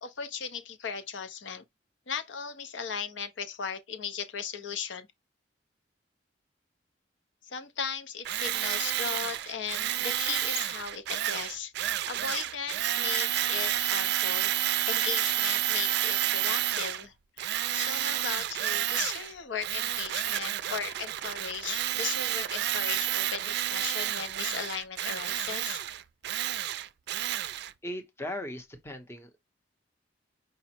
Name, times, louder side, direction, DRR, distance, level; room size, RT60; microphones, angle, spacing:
voice 1, 0.0-1.6 2.1-5.1 7.4-11.7 12.1-25.8, left 6 dB, 75° left, 0.7 m, -37 dB
Tools, 8.2-17.0 17.4-19.3 19.6-27.7, right 12 dB, 60° right, 0.4 m, -30 dB
voice 2, 27.8-29.4, left 1 dB, 15° left, 0.7 m, -38 dB
4.9 x 2.0 x 4.3 m
head